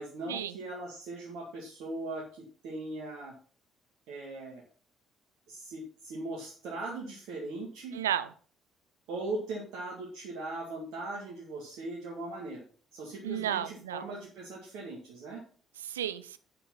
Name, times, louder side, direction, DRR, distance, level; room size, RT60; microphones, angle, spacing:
voice 1, 0.0-3.3 4.1-4.6 5.5-8.0 9.1-12.6 12.9-15.4, right 2 dB, 60° right, -2 dB, 2.0 m, -39 dB
voice 2, 7.9-8.3 13.2-14.0 15.8-16.4, right 10 dB, 75° right, 14 dB, 0.4 m, -32 dB
8.1 x 6.7 x 5.6 m, 0.43 s
figure-of-eight pair, 45°, 0 cm